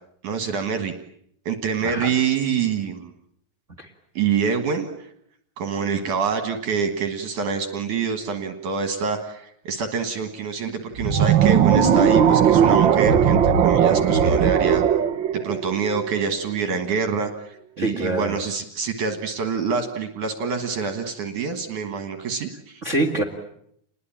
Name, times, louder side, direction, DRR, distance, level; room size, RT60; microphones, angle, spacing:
voice 1, 0.2-0.9 1.5-3.1 4.1-5.1 5.6-14.8 15.3-22.8, right 6 dB, 65° right, 7 dB, 3.0 m, -26 dB
sound 1, 11.0-16.2, right 8 dB, 85° right, 1.0 m, -18 dB
voice 2, 17.8-18.3 22.8-23.2, right 1 dB, 25° right, 6 dB, 2.0 m, -24 dB
29.5 x 21.0 x 8.8 m, 0.72 s
omnidirectional pair, 4.1 m